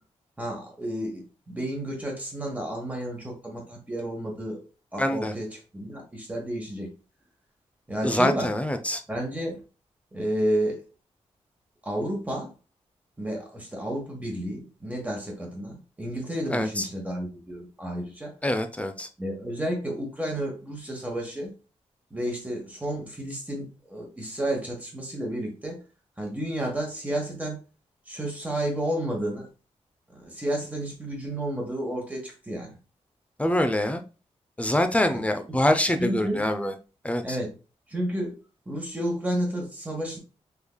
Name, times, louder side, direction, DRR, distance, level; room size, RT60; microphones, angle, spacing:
voice 1, 0.4-4.7 4.9-6.9 7.9-8.5 9.1-9.6 10.1-10.8 11.8-12.5 13.2-18.3 19.2-21.5 22.1-25.8 26.2-27.6 28.1-29.5 30.1-32.8 35.1-35.2 36.0-36.5 37.2-37.5 37.9-38.3 38.7-40.2, right 1 dB, 15° right, 0 dB, 1.2 m, -31 dB
voice 2, 5.0-5.3 8.0-9.0 16.5-16.9 18.4-19.1 33.4-34.0 34.6-36.7 37.0-37.4, left 1 dB, 10° left, 7 dB, 0.4 m, -25 dB
3.6 x 3.2 x 2.2 m, 0.32 s
wide cardioid pair, 105°, 12 cm